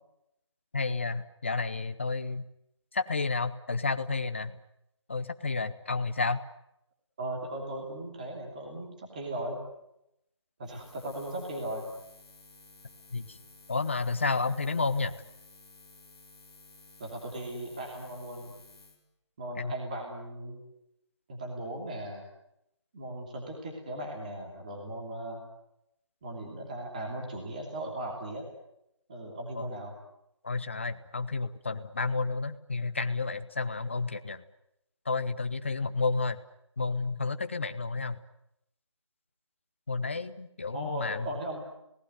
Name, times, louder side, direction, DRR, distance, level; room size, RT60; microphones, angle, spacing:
voice 1, 0.7-2.4 2.9-4.6 5.1-6.4 13.1-13.4 13.7-15.1 19.6-19.7 29.5-29.7 30.4-34.4 35.0-36.4 36.8-38.2 39.9-41.3, left 3 dB, 25° left, 10 dB, 1.0 m, -31 dB
voice 2, 7.2-9.6 10.6-11.9 14.8-14.9 17.0-18.5 19.4-20.6 21.3-22.2 22.9-25.4 26.2-28.4 29.1-29.9 40.7-41.6, right 1 dB, 15° right, 1 dB, 2.9 m, -37 dB
Buzz, 10.6-19.0, left 3 dB, 10° left, 3.5 m, -55 dB
27.5 x 19.0 x 9.5 m, 0.83 s
figure-of-eight pair, 180°, 15 cm